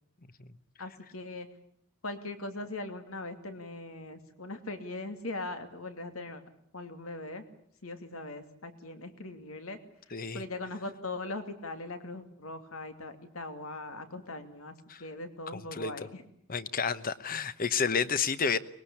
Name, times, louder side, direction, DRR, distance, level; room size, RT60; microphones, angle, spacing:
voice 1, 0.8-1.5 2.0-6.4 6.7-7.4 7.8-9.8 10.3-14.7 15.0-16.2, left 2 dB, 85° left, 2.6 m, -40 dB
voice 2, 10.1-10.4 14.9-15.0 15.7-16.1 16.5-18.6, left 6 dB, 45° left, 1.0 m, -30 dB
23.5 x 21.0 x 8.5 m
head